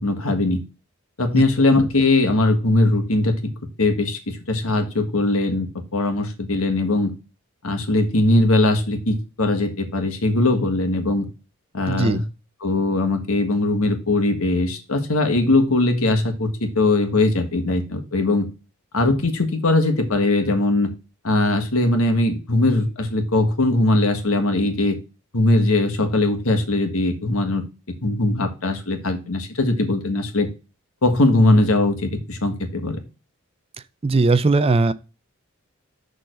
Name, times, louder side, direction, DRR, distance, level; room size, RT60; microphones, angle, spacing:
voice 1, 0.0-0.6 1.2-3.4 3.8-7.1 7.6-11.3 11.7-12.2 12.6-18.5 18.9-20.9 21.2-25.0 25.3-27.6 28.0-30.5 31.0-33.0, left 2 dB, 70° left, 1.6 m, -20 dB
voice 2, 11.9-12.2 34.0-34.9, right 3 dB, 25° right, 0.4 m, -18 dB
6.7 x 3.9 x 6.2 m
head